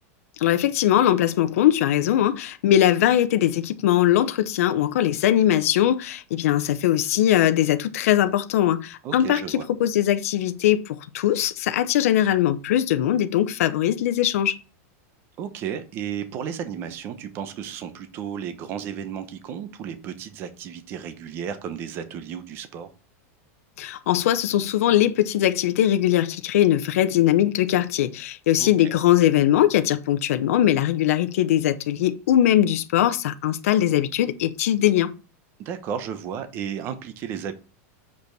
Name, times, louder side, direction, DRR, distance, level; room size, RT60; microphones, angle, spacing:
voice 1, 0.4-14.6 23.8-35.1, left 12 dB, 65° left, 0.7 m, -21 dB
voice 2, 9.0-9.7 15.4-22.9 28.6-29.0 35.6-37.5, right 8 dB, 25° right, 0.8 m, -33 dB
6.9 x 5.2 x 4.6 m
supercardioid pair, 175°, 8 cm